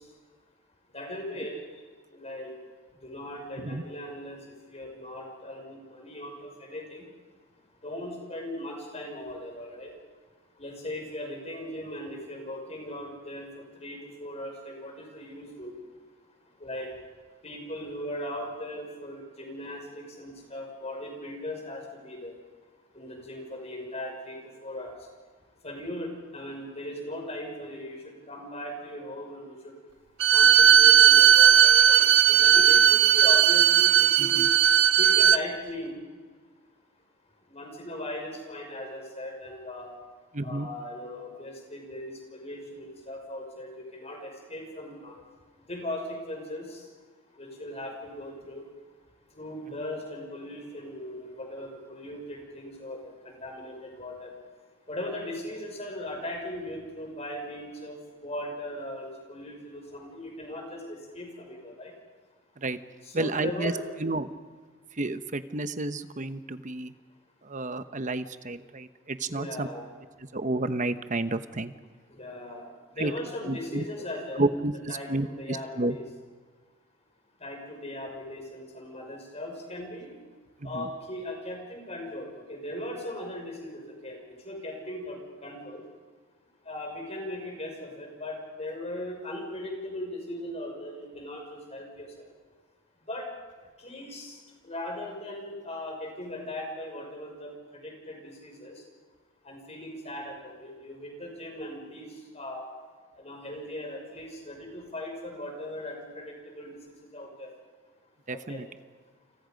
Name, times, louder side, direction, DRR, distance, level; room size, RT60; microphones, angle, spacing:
voice 1, 0.9-1.6 2.1-2.5 3.0-4.4 4.7-7.1 7.8-9.9 10.6-13.5 13.8-15.7 16.6-16.9 17.4-22.3 22.9-24.9 25.6-29.7 30.3-34.4 35.0-36.0 37.5-39.9 40.4-45.2 45.7-46.8 47.4-48.6 49.4-54.3 54.9-61.9 63.0-63.9 69.3-69.9 72.1-74.5 74.9-76.0 77.4-80.1 80.6-84.2 84.4-85.8 86.7-92.1 93.1-93.3 93.8-94.4 94.6-98.7 99.4-102.1 102.3-102.6 103.1-107.5 108.3-108.6, left 1 dB, 30° left, 2 dB, 6.0 m, -38 dB
Bowed string instrument, 30.2-35.4, right 9 dB, 65° right, 0.7 m, -17 dB
voice 2, 40.3-40.7 62.6-62.8 63.1-63.7 64.0-64.3 65.0-66.9 67.4-69.7 70.3-71.7 73.0-73.1 73.5-73.8 74.4-76.0 80.6-80.9 108.3-108.7, right 2 dB, 40° right, 10 dB, 1.0 m, -31 dB
29.5 x 27.0 x 5.3 m, 1.4 s
head